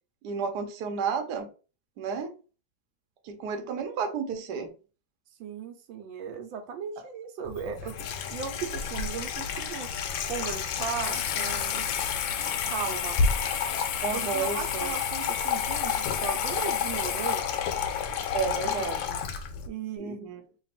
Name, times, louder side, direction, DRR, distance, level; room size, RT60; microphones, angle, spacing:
voice 1, 0.2-1.5 2.0-2.3 3.2-4.7 7.7-7.8 14.0-14.9 18.3-19.2 20.0-20.4, right 5 dB, 65° right, 1.2 m, -32 dB
voice 2, 5.4-8.0 8.3-9.9 10.2-11.9 12.6-13.2 14.1-17.5 18.6-19.0 19.7-20.2, right 7 dB, 85° right, 1.4 m, -36 dB
Water tap faucet / Sink (filling or washing), 7.5-19.7, left 7 dB, 80° left, 1.3 m, -30 dB
3.3 x 2.4 x 4.1 m
omnidirectional pair, 2.1 m